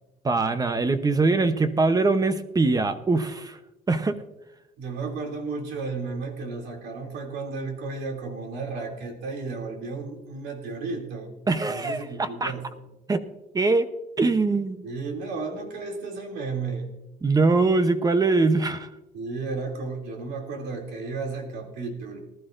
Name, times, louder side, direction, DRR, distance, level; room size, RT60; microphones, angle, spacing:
voice 1, 0.2-3.6 3.9-4.2 11.5-12.5 13.1-13.2 13.5-13.9 14.2-14.8 17.2-18.9, right 3 dB, 20° right, 10 dB, 0.8 m, -22 dB
voice 2, 4.8-11.3 11.7-12.7 14.8-16.9 19.1-22.2, right 4 dB, 80° right, 1 dB, 2.9 m, -33 dB
19.5 x 12.5 x 2.6 m, 0.97 s
cardioid pair, 110°, 17 cm